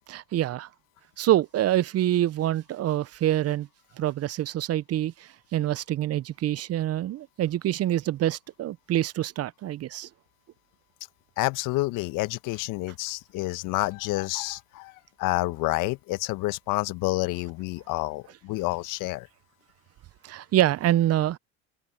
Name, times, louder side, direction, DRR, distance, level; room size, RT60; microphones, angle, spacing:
voice 1, 0.1-0.7 1.2-3.7 4.0-10.1 20.2-21.4, right 13 dB, 40° right, 0.9 m, -26 dB
voice 2, 11.4-14.9 15.2-19.3, left 20 dB, 55° left, 1.4 m, -29 dB
hypercardioid pair, 80°, 38 cm